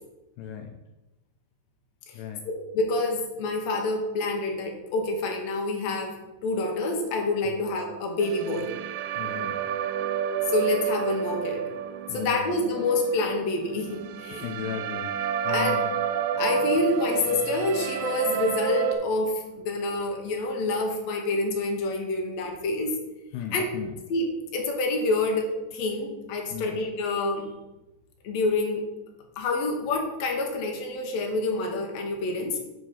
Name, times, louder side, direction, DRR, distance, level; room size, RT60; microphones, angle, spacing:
voice 1, 0.4-0.8 2.1-2.5 7.5-7.7 9.2-9.6 12.1-12.6 14.3-15.9 16.7-16.8 23.3-24.0 26.5-26.8, left 9 dB, 80° left, 4 dB, 2.1 m, -37 dB
voice 2, 2.5-6.2 6.4-8.8 10.5-11.7 12.1-14.4 15.5-15.9 16.4-22.9 23.5-23.7 24.1-27.5 28.2-28.9 29.4-32.6, left 2 dB, 65° left, 2 dB, 1.9 m, -27 dB
sound 1, 8.2-19.0, right 9 dB, 80° right, 2.1 m, -30 dB
5.2 x 4.8 x 5.6 m, 1.0 s
omnidirectional pair, 3.9 m